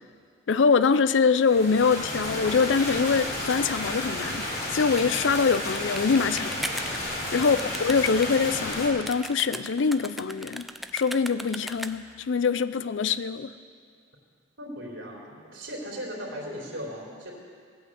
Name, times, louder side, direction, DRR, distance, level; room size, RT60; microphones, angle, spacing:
voice 1, 0.5-4.5 4.7-6.6 7.3-10.7 10.9-13.5, left 5 dB, 70° left, 14 dB, 0.5 m, -24 dB
sound 1, 1.4-8.9, left 1 dB, 55° left, 3.6 m, -32 dB
sound 2, 4.5-12.2, equal, ahead, 0.4 m, -39 dB
voice 2, 14.6-17.3, equal, 75° right, -2 dB, 3.6 m, -38 dB
18.0 x 8.8 x 7.9 m, 2.2 s
head